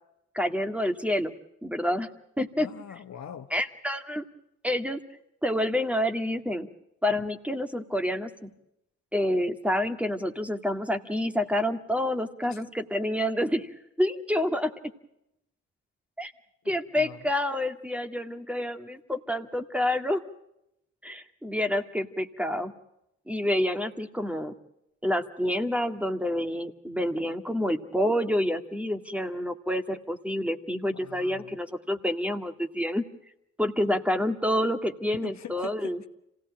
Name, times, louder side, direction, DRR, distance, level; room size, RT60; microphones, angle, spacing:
voice 1, 0.3-1.3 1.6-2.1 2.4-2.7 3.5-4.2 4.6-5.0 5.4-6.7 7.0-8.5 9.1-13.7 14.0-14.7 16.2-16.3 16.7-20.2 21.0-22.7 23.3-24.5 25.0-33.0 33.6-36.0, left 1 dB, 5° right, 7 dB, 1.9 m, -28 dB
voice 2, 2.6-3.5 12.5-12.6 16.6-17.3 30.9-31.6 35.2-36.1, left 9 dB, 65° left, 7 dB, 1.3 m, -43 dB
26.5 x 17.5 x 8.5 m, 0.85 s
supercardioid pair, 55°, 29 cm